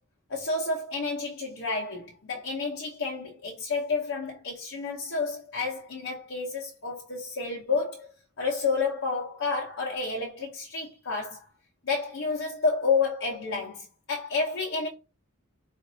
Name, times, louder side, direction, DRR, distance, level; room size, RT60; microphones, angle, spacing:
voice 1, 0.3-8.1 8.4-11.5 11.8-14.9, left 4 dB, 55° left, 0.8 m, -30 dB
4.0 x 2.6 x 2.7 m
head